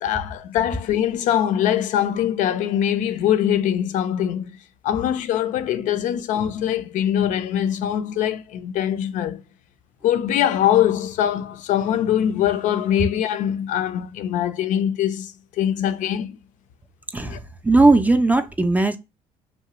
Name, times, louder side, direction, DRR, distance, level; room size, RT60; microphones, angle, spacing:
voice 1, 0.0-4.6 4.8-9.4 10.0-16.4 17.2-17.4, left 10 dB, 65° left, 0.4 m, -22 dB
voice 2, 17.6-19.0, right 2 dB, 10° right, 0.3 m, -17 dB
2.9 x 2.2 x 2.9 m
supercardioid pair, 70°, 14 cm